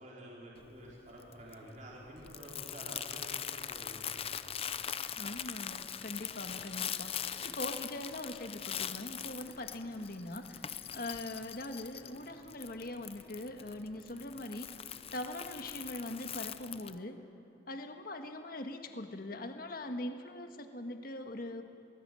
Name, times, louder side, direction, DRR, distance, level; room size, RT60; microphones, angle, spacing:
voice 1, 0.0-4.0 4.4-4.6, right 1 dB, 40° right, -4 dB, 4.3 m, -50 dB
Crumpling crinkling, 0.6-17.0, left 9 dB, 30° left, 0.6 m, -42 dB
sound 1, 2.1-17.4, equal, 5° left, 4.7 m, -66 dB
voice 2, 5.2-14.7 15.1-17.2 17.7-21.6, left 1 dB, 50° left, 6 dB, 1.6 m, -42 dB
22.5 x 20.5 x 7.7 m, 2.8 s
head